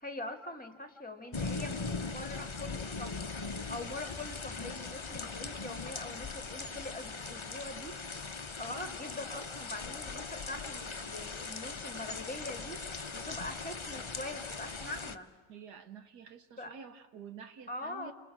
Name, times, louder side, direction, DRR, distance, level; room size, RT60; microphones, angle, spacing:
voice 1, 0.0-8.3 8.6-15.3 16.6-16.7 17.7-18.1, left 2 dB, 5° left, 8 dB, 2.0 m, -43 dB
sound 1, 1.3-15.2, left 4 dB, 35° left, 0.5 m, -40 dB
voice 2, 15.5-18.1, right 6 dB, 70° right, 10 dB, 1.8 m, -49 dB
29.0 x 28.0 x 6.1 m, 1.3 s
omnidirectional pair, 1.8 m